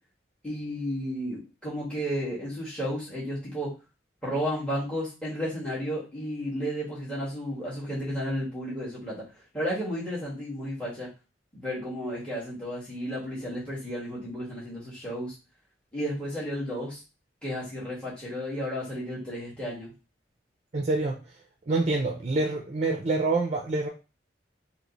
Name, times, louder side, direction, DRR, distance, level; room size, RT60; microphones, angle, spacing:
voice 1, 0.4-3.7 4.2-9.2 9.5-11.1 11.5-15.3 15.9-17.0 17.4-19.9, equal, 5° left, -8 dB, 1.4 m, -33 dB
voice 2, 20.7-21.2 21.7-23.9, right 2 dB, 40° right, 2 dB, 0.5 m, -26 dB
3.1 x 2.9 x 4.0 m, 0.30 s
head